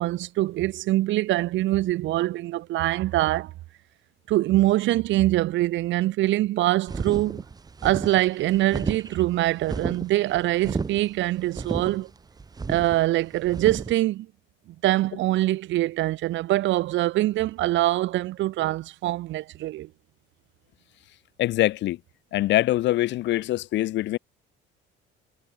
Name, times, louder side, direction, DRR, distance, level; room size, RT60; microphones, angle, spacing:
voice 1, 0.0-3.5 4.3-7.4 7.8-12.1 12.7-14.3 14.8-19.9, right 16 dB, 60° right, 4.9 m, -24 dB
sound 1, 6.9-13.9, right 4 dB, 20° right, 4.9 m, -33 dB
voice 2, 21.4-22.0 22.3-24.2, left 15 dB, 60° left, 2.1 m, -23 dB
cardioid pair, 155°, 21 cm